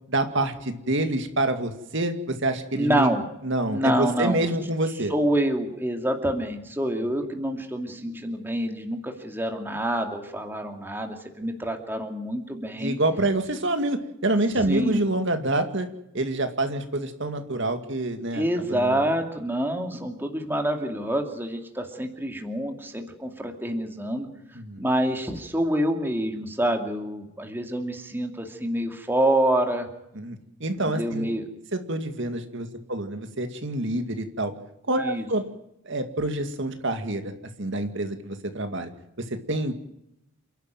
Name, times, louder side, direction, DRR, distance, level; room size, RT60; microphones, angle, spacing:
voice 1, 0.1-3.1 3.4-5.1 12.8-15.9 16.1-19.0 24.5-24.9 30.2-31.3 31.7-34.5 34.9-35.4 35.9-38.9 39.2-39.7, right 1 dB, 55° right, 7 dB, 2.3 m, -27 dB
voice 2, 2.7-3.3 3.7-4.4 5.1-13.0 14.6-15.1 18.3-24.3 24.8-29.9 30.8-31.5 35.0-35.2, right 1 dB, 10° right, 3 dB, 2.5 m, -27 dB
29.0 x 12.0 x 9.2 m, 0.82 s
head